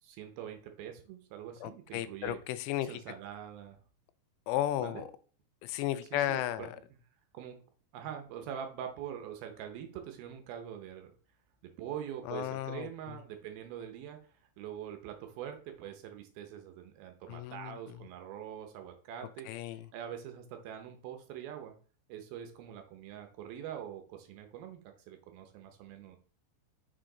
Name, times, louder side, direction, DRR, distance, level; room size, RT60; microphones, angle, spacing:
voice 1, 0.0-2.4 2.8-3.8 4.8-5.0 6.1-6.7 7.3-7.6 7.9-11.1 11.8-21.7 22.1-26.2, right 9 dB, 75° right, 6 dB, 2.3 m, -44 dB
voice 2, 1.6-3.0 4.5-5.1 5.6-6.7 12.3-12.9 17.3-17.8 19.5-19.9, left 13 dB, 85° left, 14 dB, 2.7 m, -34 dB
6.6 x 5.0 x 3.8 m, 0.41 s
omnidirectional pair, 5.1 m